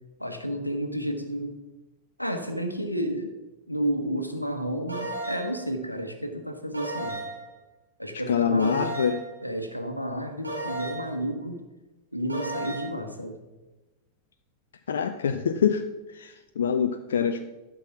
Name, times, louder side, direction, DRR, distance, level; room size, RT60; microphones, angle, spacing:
voice 1, 0.2-1.6 2.2-3.3 3.7-7.2 8.0-8.9 9.4-11.6 12.1-13.4, equal, 90° left, 6 dB, 1.2 m, -31 dB
sound 1, 4.9-5.6 6.7-7.5 8.6-9.3 10.4-11.2 12.3-12.9, right 2 dB, 85° right, 2.1 m, -34 dB
voice 2, 8.3-9.2 14.9-15.8 16.1-17.4, left 7 dB, 65° left, 8 dB, 0.5 m, -25 dB
11.5 x 6.2 x 5.9 m, 1.1 s
figure-of-eight pair, 90°, 0 cm